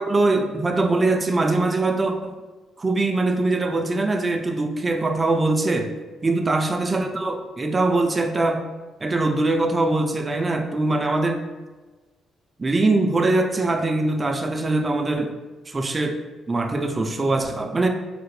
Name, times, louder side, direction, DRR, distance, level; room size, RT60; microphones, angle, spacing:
voice 1, 0.0-2.3 2.8-5.9 6.2-8.7 9.0-11.4 12.6-15.3 15.7-16.2 16.5-17.9, right 2 dB, 25° right, 4 dB, 0.3 m, -22 dB
3.2 x 2.1 x 3.1 m, 1.3 s
cardioid pair, 90°, 0 cm